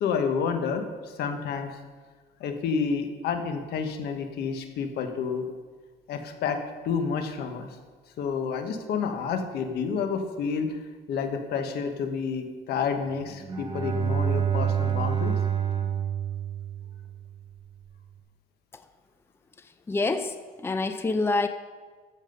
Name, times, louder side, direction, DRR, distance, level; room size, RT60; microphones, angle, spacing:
voice 1, 0.0-1.8 2.4-5.5 6.1-7.7 8.2-10.8 11.1-15.4, left 6 dB, 75° left, 6 dB, 1.5 m, -29 dB
Bowed string instrument, 13.3-17.4, right 8 dB, 30° right, 1.1 m, -28 dB
voice 2, 19.9-21.5, left 3 dB, 15° left, 9 dB, 0.6 m, -26 dB
13.5 x 7.4 x 5.4 m, 1.4 s
cardioid pair, 110°, 17 cm